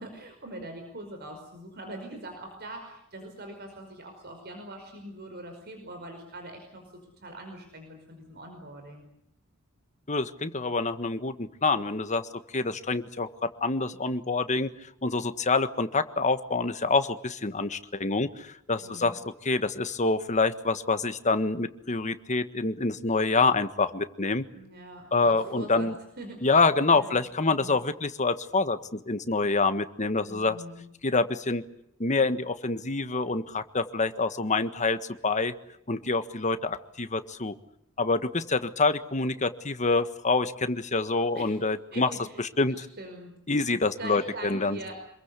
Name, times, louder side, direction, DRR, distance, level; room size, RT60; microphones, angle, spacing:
voice 1, 0.0-9.0 18.8-19.2 24.5-25.9 26.2-26.4 26.9-27.2 27.5-27.7 30.3-30.8 41.3-41.6 41.9-42.4 42.7-43.3 44.0-45.0, right 1 dB, 50° right, 4 dB, 5.3 m, -42 dB
voice 2, 10.1-14.7 15.0-24.4 25.1-25.9 26.4-30.6 31.0-31.6 32.0-35.5 35.9-37.5 38.0-42.1 42.6-42.9 43.5-44.8, left 3 dB, 35° left, 10 dB, 1.6 m, -26 dB
26.5 x 22.0 x 8.4 m, 0.74 s
head